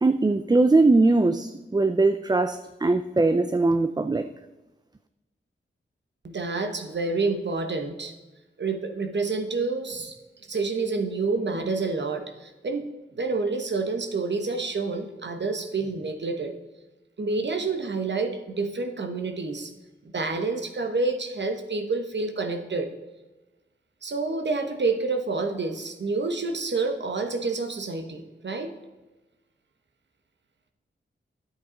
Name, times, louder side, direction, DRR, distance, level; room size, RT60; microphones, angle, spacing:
voice 1, 0.0-4.3, right 3 dB, 20° right, 9 dB, 0.5 m, -21 dB
voice 2, 6.2-8.1 8.6-10.2 10.5-12.8 13.1-16.5 17.2-19.7 20.1-22.9 24.0-28.7, right 3 dB, 60° right, 6 dB, 1.3 m, -28 dB
9.7 x 8.1 x 5.2 m, 1.1 s
wide cardioid pair, 70°, 20 cm